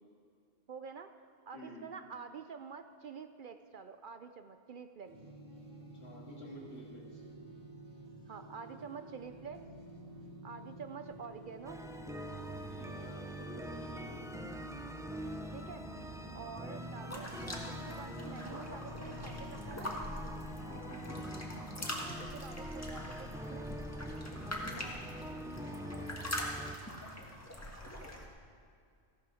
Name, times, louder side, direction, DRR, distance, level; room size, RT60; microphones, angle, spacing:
voice 1, 0.7-1.1 1.5-5.1 8.3-9.7 10.4-11.9 15.5-15.9 16.3-17.3 17.7-20.0 22.2-23.7, right 6 dB, 55° right, 9 dB, 0.6 m, -48 dB
voice 2, 1.5-1.8 6.0-7.2 12.7-14.2 20.6-21.3 24.3-26.1, left 1 dB, 70° left, -3 dB, 2.8 m, -51 dB
sound 1, 5.0-22.2, right 1 dB, 30° right, 1.6 m, -51 dB
sound 2, 11.6-26.8, equal, 5° right, 0.4 m, -44 dB
sound 3, 17.1-28.3, equal, 15° left, 1.5 m, -43 dB
15.0 x 9.6 x 6.3 m, 2.3 s
omnidirectional pair, 1.1 m